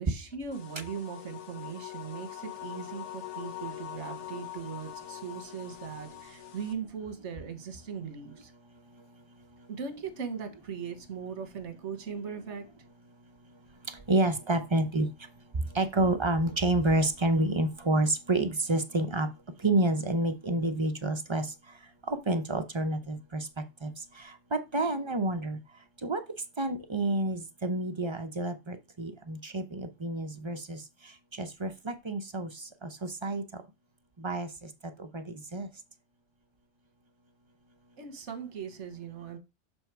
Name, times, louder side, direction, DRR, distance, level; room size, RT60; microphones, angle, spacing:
voice 1, 0.0-8.5 9.7-12.7 38.0-39.4, right 6 dB, 85° right, 1.4 m, -39 dB
sound 1, 0.5-6.7, left 13 dB, 85° left, 1.3 m, -43 dB
voice 2, 14.1-15.1 15.7-19.3 19.6-21.5 22.1-25.6 26.0-26.2 26.6-30.8 31.3-32.5 32.8-33.4 34.2-34.7 35.0-35.7, right 2 dB, 30° right, 0.6 m, -29 dB
7.1 x 3.3 x 4.6 m
omnidirectional pair, 1.2 m